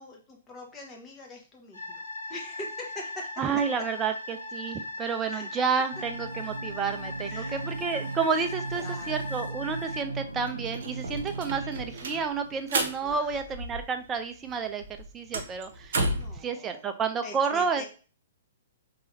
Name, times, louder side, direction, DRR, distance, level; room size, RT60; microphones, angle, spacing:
voice 1, 0.0-2.0 2.3-3.5 5.3-5.5 7.2-7.6 8.7-9.2 13.0-13.4 16.1-16.9 17.2-17.8, left 2 dB, 20° left, 0 dB, 1.2 m, -44 dB
sound 1, 1.7-10.0, left 2 dB, 80° left, 1.4 m, -39 dB
voice 2, 3.4-14.8 15.1-16.0 16.4-17.8, right 5 dB, 20° right, 7 dB, 0.6 m, -30 dB
sound 2, 5.9-11.9, right 3 dB, 90° right, 0.4 m, -37 dB
sound 3, 9.9-10.0 10.3-14.2 14.5-16.4, right 2 dB, 60° right, 0.9 m, -33 dB
4.6 x 2.9 x 3.1 m, 0.36 s
figure-of-eight pair, 120°, 0 cm